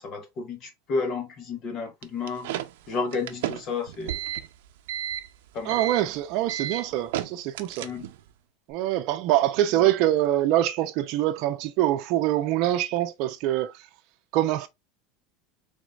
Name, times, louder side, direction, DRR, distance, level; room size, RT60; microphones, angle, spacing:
voice 1, 0.0-2.5 2.9-4.2 5.5-5.8 7.8-8.1 9.7-9.9, left 4 dB, 35° left, 1.4 m, -32 dB
sound 1, 2.0-8.3, right 11 dB, 80° right, 0.6 m, -33 dB
voice 2, 5.7-7.9 8.7-13.7 14.3-14.7, right 13 dB, 50° right, 0.8 m, -24 dB
4.9 x 3.6 x 2.4 m
supercardioid pair, 165°, 0 cm